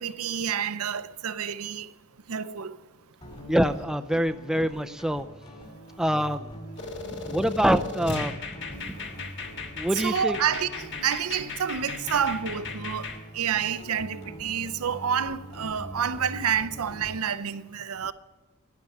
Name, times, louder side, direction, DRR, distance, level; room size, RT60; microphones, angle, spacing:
voice 1, 0.0-1.9 2.3-2.8 9.9-13.1 13.3-18.1, right 7 dB, 80° right, 0.6 m, -29 dB
sound 1, 3.2-17.3, equal, 30° left, 2.2 m, -44 dB
voice 2, 3.5-5.3 6.0-6.5 7.1-8.4 8.7-9.0 9.8-10.4, equal, 5° right, 0.3 m, -25 dB
sound 2, 6.8-13.2, left 4 dB, 55° left, 1.5 m, -37 dB
12.0 x 10.0 x 5.4 m
head